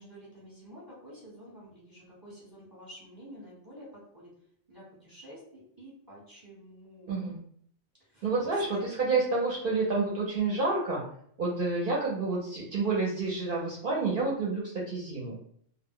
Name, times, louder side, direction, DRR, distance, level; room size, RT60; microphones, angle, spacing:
voice 1, 0.0-3.9 4.1-4.3 4.7-7.3 8.1-8.2 8.7-8.8, equal, 20° right, -6 dB, 0.8 m, -49 dB
voice 2, 7.1-7.4 8.2-11.0 11.4-15.4, right 3 dB, 55° right, -5 dB, 0.7 m, -29 dB
2.2 x 2.0 x 3.5 m, 0.65 s
omnidirectional pair, 1.2 m